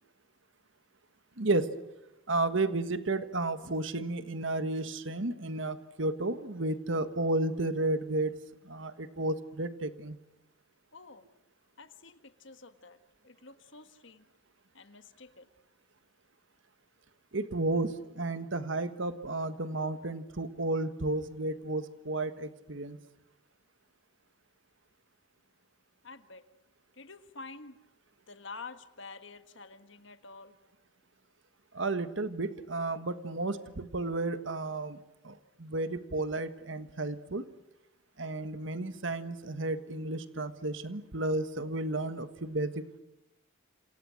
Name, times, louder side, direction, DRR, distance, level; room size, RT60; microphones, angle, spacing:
voice 1, 1.4-1.7 2.3-8.3 8.6-10.2 17.3-23.0 31.7-35.0 35.2-37.5 38.2-43.0, right 2 dB, 70° right, 11 dB, 1.5 m, -32 dB
voice 2, 10.9-11.2 11.8-13.0 13.2-14.2 14.7-15.5 26.0-26.4 27.0-27.8 28.3-30.5, left 4 dB, 65° left, 10 dB, 1.5 m, -48 dB
28.5 x 27.5 x 6.4 m, 0.91 s
head